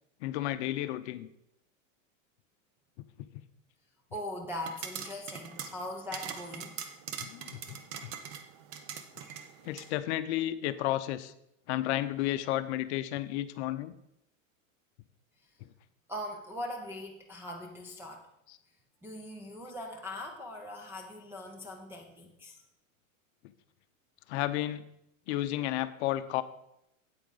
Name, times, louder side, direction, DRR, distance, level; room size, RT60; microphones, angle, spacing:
voice 1, 0.2-1.3 3.0-3.1 3.3-3.4 4.1-4.2 7.2-8.1 9.6-11.3 11.7-14.0 18.5-18.6 24.3-24.9 25.3-26.4, left 14 dB, 55° left, 13 dB, 0.7 m, -32 dB
voice 2, 4.1-6.8 16.1-18.3 19.0-22.6, left 1 dB, 5° right, 1 dB, 0.3 m, -41 dB
sound 1, 4.6-9.9, right 8 dB, 50° right, 1.0 m, -42 dB
8.6 x 8.4 x 4.0 m, 0.81 s
supercardioid pair, 140°, 41 cm